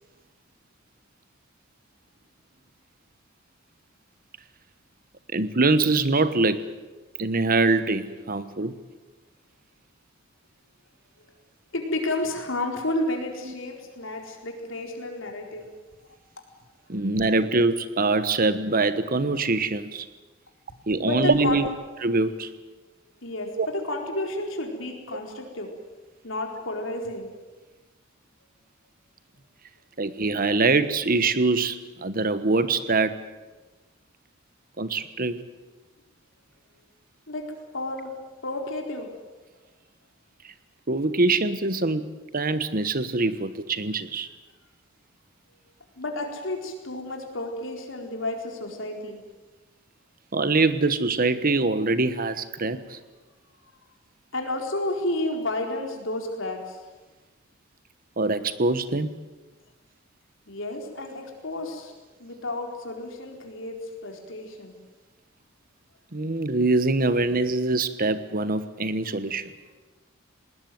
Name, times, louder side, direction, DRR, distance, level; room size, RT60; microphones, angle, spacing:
voice 1, 5.3-6.7 7.2-8.7 13.4-13.5 16.9-20.1 20.9-21.7 22.0-22.5 23.6-23.7 25.1-25.2 30.0-33.3 34.8-35.4 40.9-44.3 50.3-53.0 58.2-59.1 66.1-69.5, right 3 dB, 45° right, 13 dB, 1.2 m, -24 dB
voice 2, 11.7-15.7 21.0-21.7 23.2-25.7 26.2-27.3 37.3-38.2 38.4-39.1 46.0-49.2 54.3-56.8 60.5-61.9 62.2-64.8, left 1 dB, 70° left, 2 dB, 4.4 m, -31 dB
20.0 x 19.0 x 9.4 m, 1.2 s
head